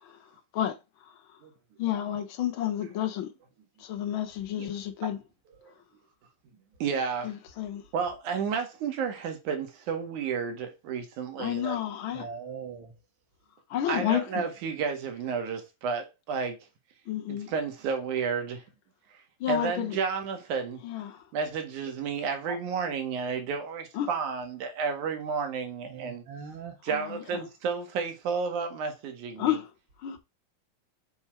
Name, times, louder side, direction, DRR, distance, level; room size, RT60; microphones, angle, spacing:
voice 1, 1.8-3.3 3.8-5.2 7.2-7.9 11.4-12.3 13.7-14.5 17.1-17.5 19.4-20.0 20.8-21.2 23.9-24.2 26.9-27.5 29.4-29.7 30.0-30.2, left 11 dB, 80° left, 1.1 m, -31 dB
voice 2, 6.8-7.3 7.9-11.8 13.9-16.6 17.3-18.6 19.5-20.8 21.3-26.2 26.8-29.6, right 6 dB, 70° right, 2.9 m, -31 dB
voice 3, 12.1-12.9 22.5-22.6 25.9-26.7, right 6 dB, 45° right, 2.6 m, -40 dB
7.1 x 5.6 x 4.4 m
omnidirectional pair, 3.6 m